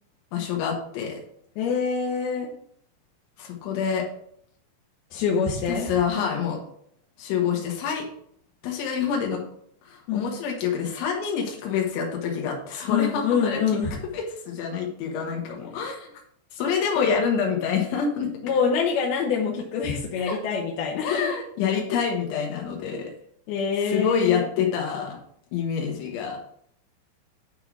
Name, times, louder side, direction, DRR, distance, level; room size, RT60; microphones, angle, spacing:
voice 1, 0.3-1.2 3.4-4.1 5.7-6.6 7.2-8.0 8.6-9.4 9.8-13.6 14.1-16.1 16.5-18.3 20.2-20.4 21.0-23.1 23.9-25.2 25.5-26.4, left 7 dB, 90° left, 0 dB, 3.7 m, -27 dB
voice 2, 1.6-2.5 5.1-6.0 10.1-10.3 12.9-14.0 17.0-17.1 18.4-21.3 23.5-24.5, left 6 dB, 70° left, -2 dB, 2.7 m, -25 dB
11.0 x 4.0 x 4.7 m, 0.67 s
omnidirectional pair, 5.2 m